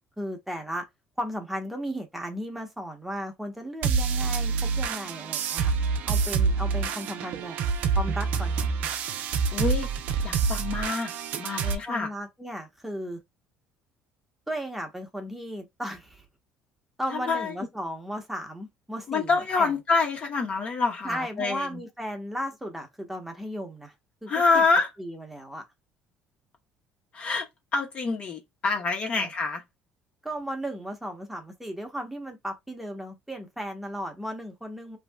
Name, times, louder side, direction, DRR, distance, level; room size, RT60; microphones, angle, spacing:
voice 1, 0.2-0.8 1.2-5.7 6.0-7.6 8.0-8.6 11.9-13.2 14.5-16.2 17.0-19.7 21.0-23.9 24.2-24.6 25.0-25.6 29.1-29.3 30.2-35.0, equal, 5° right, 0.9 m, -35 dB
sound 1, 3.8-11.8, right 5 dB, 65° right, 0.5 m, -27 dB
voice 2, 9.5-9.9 10.2-12.1 17.1-17.5 19.1-21.8 24.3-24.9 27.1-27.5 27.7-29.6, left 4 dB, 45° left, 0.8 m, -26 dB
3.0 x 2.7 x 2.2 m
supercardioid pair, 85°, 3 cm